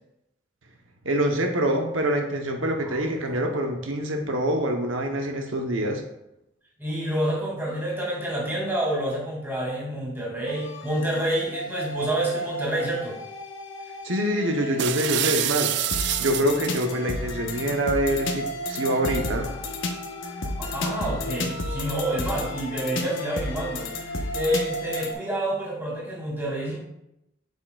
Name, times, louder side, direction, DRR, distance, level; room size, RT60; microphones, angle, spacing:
voice 1, 1.0-6.0 14.0-15.7 16.2-19.5, right 1 dB, 90° right, 3 dB, 0.9 m, -25 dB
voice 2, 2.8-3.4 6.8-13.2 20.6-23.9 24.3-26.8, right 1 dB, 10° right, -4 dB, 2.3 m, -28 dB
sound 1, 10.5-25.1, left 1 dB, 85° left, 0.9 m, -32 dB
sound 2, 14.8-16.9, right 12 dB, 60° right, 0.3 m, -27 dB
8.4 x 6.4 x 2.3 m, 0.85 s
head